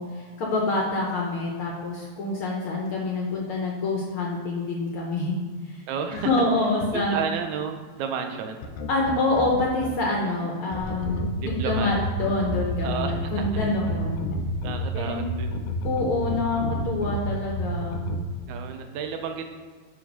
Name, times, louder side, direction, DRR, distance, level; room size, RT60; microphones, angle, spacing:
voice 1, 0.0-5.3 5.7-5.8 6.1-7.2 8.9-14.3 14.9-15.3 15.8-18.1, left 2 dB, 65° left, -2 dB, 1.5 m, -26 dB
voice 2, 5.9-6.3 6.9-8.7 11.4-11.9 12.8-13.5 14.6-15.6 18.5-19.4, right 6 dB, 85° right, 5 dB, 2.1 m, -32 dB
sound 1, 8.6-9.9 10.7-14.7 15.5-17.1 17.9-18.2, left 5 dB, 80° left, 1.4 m, -33 dB
sound 2, 10.8-18.2, right 1 dB, 45° right, 2.1 m, -31 dB
9.4 x 3.5 x 5.3 m, 1.5 s
omnidirectional pair, 3.4 m